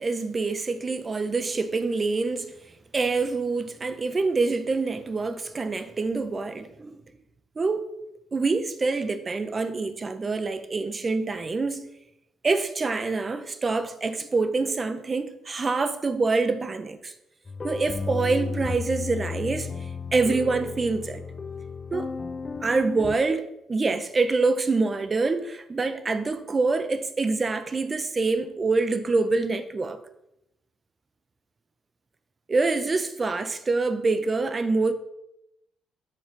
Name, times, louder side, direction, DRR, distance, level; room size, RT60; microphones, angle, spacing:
voice 1, 0.0-2.5 2.9-7.0 7.6-7.8 8.3-11.9 12.4-17.1 17.6-21.2 21.9-22.1 22.6-30.0 32.5-34.9, right 3 dB, 25° right, 0.5 m, -26 dB
sound 1, 17.5-23.1, left 4 dB, 25° left, 0.4 m, -33 dB
6.4 x 3.2 x 5.1 m
cardioid pair, 120°, 0 cm